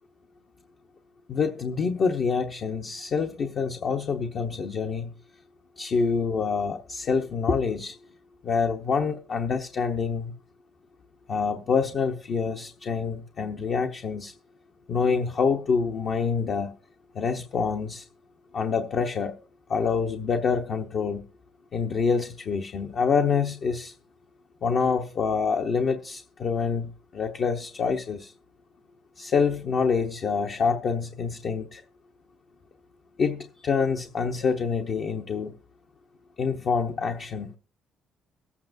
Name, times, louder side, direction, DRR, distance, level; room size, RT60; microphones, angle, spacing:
voice 1, 1.3-5.1 5.8-7.9 8.4-10.3 11.3-14.3 14.9-16.7 17.1-18.1 18.5-19.3 19.7-21.2 21.7-23.9 24.6-28.3 29.2-31.8 33.2-35.5 36.4-37.5, left 5 dB, 60° left, 0.9 m, -26 dB
23.0 x 8.5 x 2.6 m
cardioid pair, 90°, 0 cm